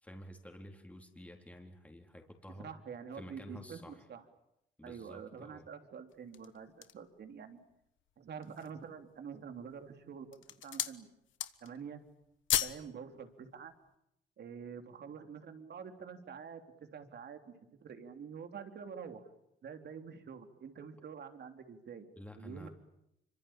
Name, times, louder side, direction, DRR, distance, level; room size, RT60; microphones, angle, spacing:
voice 1, 0.0-2.7 3.1-4.1 4.8-5.7 22.2-22.7, equal, 5° left, 3 dB, 3.9 m, -51 dB
voice 2, 2.6-4.2 4.8-7.6 8.2-10.4 10.6-11.1 11.6-12.0 12.6-13.7 14.4-19.3 19.6-22.1 22.4-22.7, right 6 dB, 55° right, 7 dB, 3.4 m, -47 dB
sound 1, 6.1-7.1 7.7-7.8 8.3-8.8 9.5-9.9 10.2-11.0 11.3-11.8 12.1-12.9 13.2-13.3, left 12 dB, 75° left, 1.3 m, -35 dB
26.0 x 24.5 x 9.0 m, 0.81 s
cardioid pair, 90°, 20 cm